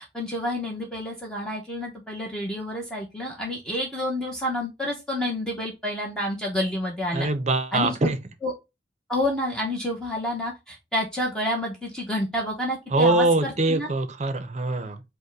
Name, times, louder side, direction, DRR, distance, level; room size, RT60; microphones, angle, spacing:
voice 1, 0.1-7.3 7.7-8.1 8.4-8.5 9.1-13.9, left 1 dB, 5° left, 0.8 m, -29 dB
voice 2, 7.1-8.2 12.9-15.0, right 2 dB, 40° right, 0.7 m, -23 dB
5.3 x 2.2 x 4.6 m
head